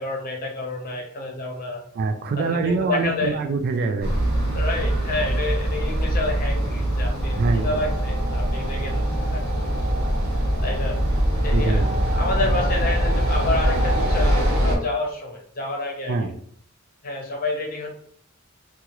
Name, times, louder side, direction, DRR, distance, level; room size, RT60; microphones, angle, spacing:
voice 1, 0.0-1.8 2.4-3.4 4.5-9.4 10.6-11.0 11.4-11.8 12.1-16.3 17.0-17.9, left 2 dB, 45° left, 1 dB, 0.7 m, -29 dB
voice 2, 2.0-4.1 7.3-7.8 11.5-11.9 16.1-16.3, right 4 dB, 50° right, 8 dB, 0.3 m, -24 dB
sound 1, 4.0-14.8, equal, 85° right, 0.9 m, -22 dB
2.8 x 2.4 x 2.9 m, 0.62 s
head